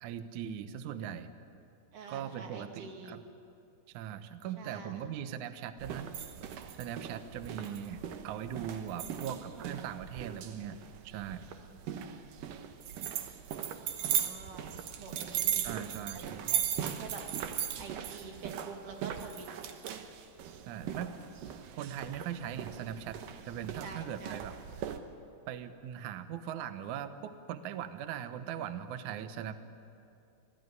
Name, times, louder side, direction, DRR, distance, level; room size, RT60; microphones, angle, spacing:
voice 1, 0.0-1.3 2.1-3.2 3.9-6.1 6.8-10.8 11.0-11.5 15.6-16.5 20.7-21.1 21.7-23.2 23.4-24.5 24.8-24.9 25.5-29.6, right 9 dB, 85° right, 9 dB, 1.7 m, -40 dB
voice 2, 1.9-3.2 4.6-5.1 9.0-9.9 14.0-14.7 15.0-15.9 16.1-17.5 17.8-19.5 23.8-24.4, right 4 dB, 50° right, 3 dB, 3.3 m, -47 dB
sound 1, 5.8-25.0, right 9 dB, 70° right, 2.2 m, -38 dB
26.0 x 18.0 x 9.6 m, 2.5 s
omnidirectional pair, 5.2 m